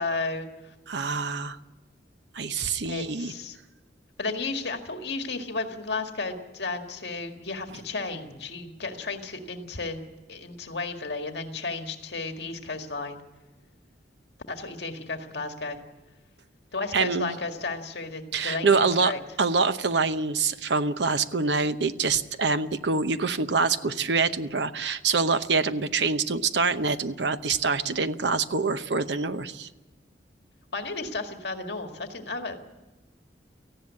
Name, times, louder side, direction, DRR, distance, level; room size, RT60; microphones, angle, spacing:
voice 1, 0.0-0.7 2.8-3.6 4.2-10.0 10.3-13.2 14.5-15.8 16.7-18.7 19.0-19.2 30.7-32.8, left 3 dB, 65° left, 5 dB, 1.9 m, -33 dB
voice 2, 0.9-1.6 2.3-3.3 16.9-17.4 18.3-19.1 19.4-29.7, right 4 dB, 75° right, 11 dB, 0.9 m, -25 dB
18.0 x 15.0 x 9.7 m, 1.1 s
head